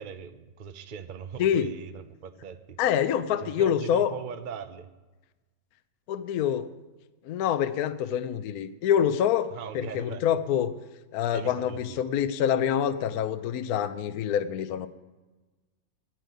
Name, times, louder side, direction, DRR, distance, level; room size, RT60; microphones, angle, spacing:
voice 1, 0.0-2.6 3.4-4.9 9.5-10.2 11.3-12.0, right 7 dB, 60° right, 8 dB, 0.5 m, -40 dB
voice 2, 1.4-1.7 2.8-4.1 6.1-6.7 7.2-10.7 11.1-14.9, left 9 dB, 65° left, 11 dB, 1.1 m, -26 dB
12.0 x 9.1 x 9.3 m, 1.2 s
omnidirectional pair, 2.0 m